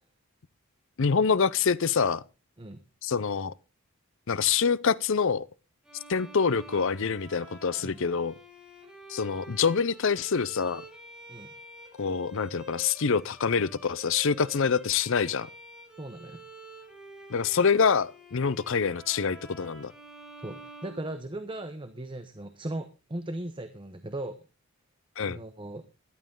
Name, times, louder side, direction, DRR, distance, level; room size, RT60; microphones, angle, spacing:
voice 1, 1.0-2.2 3.0-3.5 4.3-5.4 6.1-8.3 9.1-10.8 12.0-15.5 17.3-19.9 25.2-25.4, left 5 dB, 60° left, 0.6 m, -26 dB
Bowed string instrument, 5.8-21.7, right 1 dB, 5° right, 7.5 m, -49 dB
voice 2, 16.0-16.4 20.4-24.4 25.2-25.8, right 1 dB, 20° right, 0.9 m, -38 dB
14.5 x 11.5 x 3.8 m
head